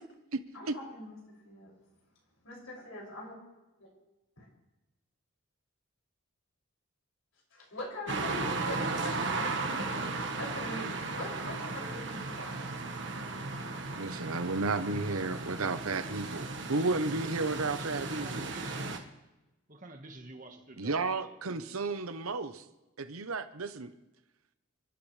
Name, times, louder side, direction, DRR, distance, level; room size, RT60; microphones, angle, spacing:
voice 1, 0.5-1.2 1.4-1.7 2.4-3.3 3.8-3.9 4.4-4.5 7.5-12.5 16.2-16.3, left 1 dB, 80° left, -2 dB, 6.6 m, -43 dB
sound 1, 8.1-19.0, right 3 dB, 55° right, 1.5 m, -35 dB
voice 2, 14.0-18.5 20.8-22.6 23.0-23.9, right 3 dB, 80° right, 9 dB, 1.0 m, -33 dB
voice 3, 17.2-19.1 19.7-21.8, right 2 dB, 40° right, 4 dB, 1.6 m, -49 dB
29.0 x 12.0 x 3.4 m, 1.0 s
head